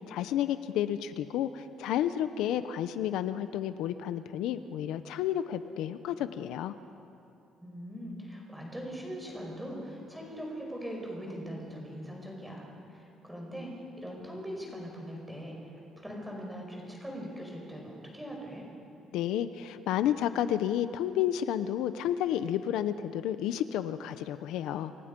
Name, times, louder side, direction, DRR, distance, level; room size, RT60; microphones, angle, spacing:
voice 1, 0.1-6.8 19.1-24.9, left 11 dB, 80° left, 11 dB, 0.8 m, -31 dB
voice 2, 7.6-12.7 12.9-18.7, equal, 5° right, -1 dB, 5.2 m, -41 dB
28.0 x 26.5 x 5.4 m, 2.8 s
cardioid pair, 165°, 0 cm